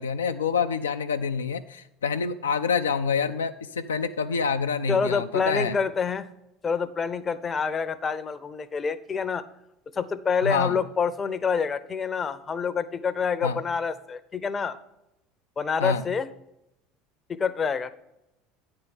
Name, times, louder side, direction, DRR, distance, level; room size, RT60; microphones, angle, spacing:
voice 1, 0.0-5.8 10.4-10.8 13.4-13.6 15.8-16.0, left 5 dB, 80° left, 8 dB, 0.3 m, -27 dB
voice 2, 4.9-6.3 6.6-9.4 9.9-14.8 15.6-16.3 17.3-17.9, left 6 dB, 30° left, 14 dB, 0.6 m, -27 dB
9.3 x 4.5 x 5.7 m, 0.88 s
figure-of-eight pair, 70°, 0 cm